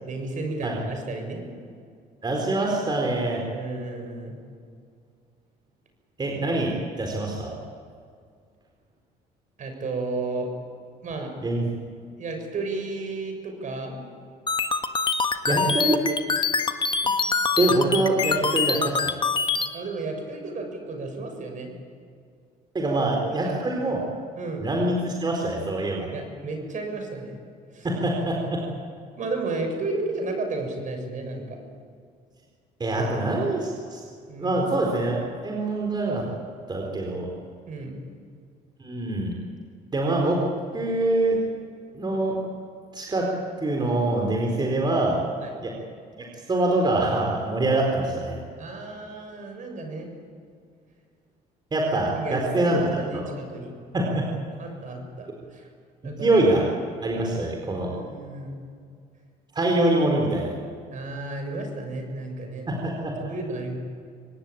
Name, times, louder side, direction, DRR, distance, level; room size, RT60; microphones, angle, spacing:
voice 1, 0.0-1.4 3.3-4.4 9.6-10.5 11.0-11.3 12.2-14.0 19.7-21.7 22.8-23.6 24.4-24.7 26.1-27.4 27.7-27.9 29.2-31.6 34.3-34.6 37.7-38.0 44.6-44.7 45.4-45.6 48.6-50.1 52.1-53.7 54.6-55.7 56.0-56.5 57.8-58.6 60.9-62.7 63.3-63.8, right 3 dB, 50° right, 4 dB, 6.8 m, -33 dB
voice 2, 2.2-3.4 6.2-7.5 11.4-11.6 15.5-16.0 17.6-19.1 22.7-24.0 24.6-26.1 27.8-28.6 32.8-34.0 34.4-36.2 36.7-37.3 38.8-39.3 39.9-40.4 40.7-41.4 41.9-42.4 42.9-43.3 43.6-45.2 45.6-45.7 46.3-48.4 51.7-52.8 53.1-53.2 53.9-54.2 56.0-56.6 57.0-57.9 59.5-60.5 62.7-63.1, right 2 dB, 25° right, 0 dB, 4.4 m, -24 dB
sound 1, 14.5-19.7, left 5 dB, 30° left, 1.5 m, -24 dB
25.0 x 18.5 x 8.8 m, 2.2 s
cardioid pair, 110°, 17 cm